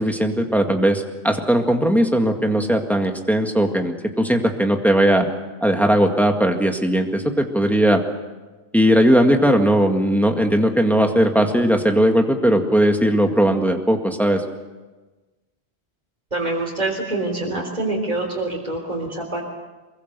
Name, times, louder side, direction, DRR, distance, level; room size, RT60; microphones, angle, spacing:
voice 1, 0.0-5.3 5.6-8.0 8.7-14.4, right 1 dB, ahead, 3 dB, 1.9 m, -18 dB
voice 2, 16.3-19.4, right 2 dB, 40° right, -2 dB, 3.9 m, -25 dB
23.5 x 22.0 x 6.8 m, 1.2 s
omnidirectional pair, 1.1 m